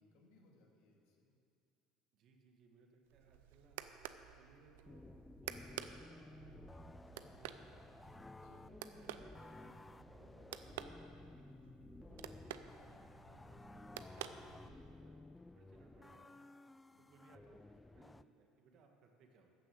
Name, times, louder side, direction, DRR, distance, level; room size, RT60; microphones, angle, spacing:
voice 1, 0.0-1.3 8.3-8.7 11.7-12.0 16.9-17.2, left 2 dB, 75° left, 0 dB, 2.2 m, -70 dB
voice 2, 2.1-3.8 4.4-7.9 8.4-11.6 12.0-16.5 17.0-19.5, right 4 dB, 60° right, 3 dB, 1.7 m, -67 dB
sound 1, 3.1-15.0, right 11 dB, 85° right, 0.5 m, -52 dB
sound 2, 4.9-18.2, left 2 dB, 15° left, 0.3 m, -55 dB
13.5 x 6.1 x 7.8 m, 2.5 s
supercardioid pair, 85°, 0 cm